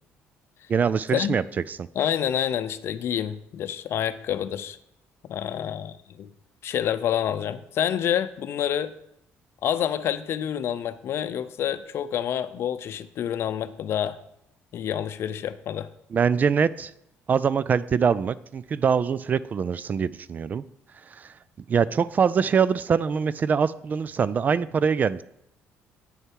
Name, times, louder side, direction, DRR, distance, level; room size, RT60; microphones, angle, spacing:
voice 1, 0.7-1.9 16.1-16.9 17.3-20.6 21.1-21.3 21.7-25.2, right 6 dB, 35° right, 18 dB, 0.3 m, -23 dB
voice 2, 2.0-4.8 5.3-6.3 6.6-8.9 9.6-14.2 14.7-15.9, left 10 dB, 60° left, 12 dB, 0.6 m, -28 dB
8.8 x 6.5 x 4.6 m, 0.75 s
cardioid pair, 105°, 5 cm